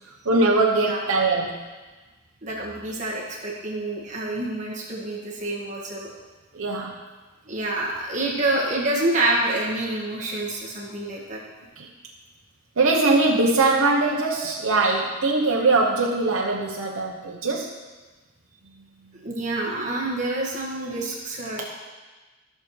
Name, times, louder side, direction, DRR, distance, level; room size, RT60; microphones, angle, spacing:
voice 1, 0.2-1.6 6.5-6.9 11.8-11.9 12.8-17.7, right 3 dB, 85° right, -1 dB, 0.8 m, -21 dB
voice 2, 2.4-6.1 7.5-11.4 19.2-21.6, right 2 dB, 35° right, -4 dB, 1.7 m, -27 dB
15.0 x 6.6 x 3.1 m, 1.3 s
head